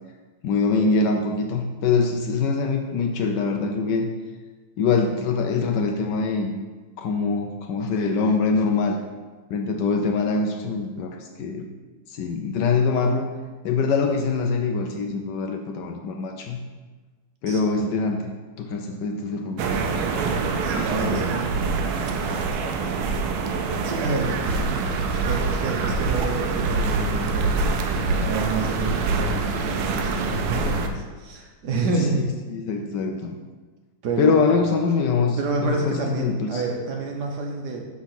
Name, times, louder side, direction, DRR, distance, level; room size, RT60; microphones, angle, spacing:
voice 1, 0.4-4.1 4.8-6.5 7.0-9.0 9.5-11.7 12.1-13.3 13.6-16.6 17.4-18.3 18.6-19.7 21.0-21.3 32.5-33.4 34.2-36.6, left 4 dB, 75° left, 3 dB, 1.0 m, -24 dB
voice 2, 17.5-17.9 20.6-21.5 23.8-27.7 28.2-32.2 34.0-34.4 35.4-37.9, right 3 dB, 60° right, 1 dB, 1.3 m, -28 dB
sound 1, 19.6-30.9, right 4 dB, 80° right, 1.5 m, -25 dB
7.1 x 3.7 x 5.7 m, 1.3 s
omnidirectional pair, 2.4 m